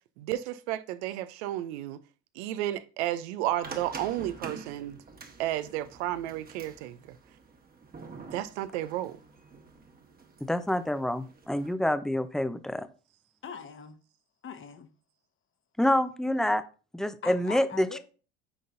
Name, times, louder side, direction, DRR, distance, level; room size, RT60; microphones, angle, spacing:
voice 1, 0.2-2.0 2.4-5.0 5.4-7.2 8.3-9.2, right 13 dB, 80° right, 0.6 m, -32 dB
sound 1, 3.6-11.7, right 4 dB, 25° right, 1.2 m, -47 dB
voice 2, 10.4-12.9 15.8-16.6 16.9-18.0, left 1 dB, ahead, 0.5 m, -27 dB
voice 3, 13.4-14.0 14.4-14.9 17.2-18.0, left 7 dB, 35° left, 1.1 m, -42 dB
9.8 x 3.9 x 2.6 m
hypercardioid pair, 80°, 33 cm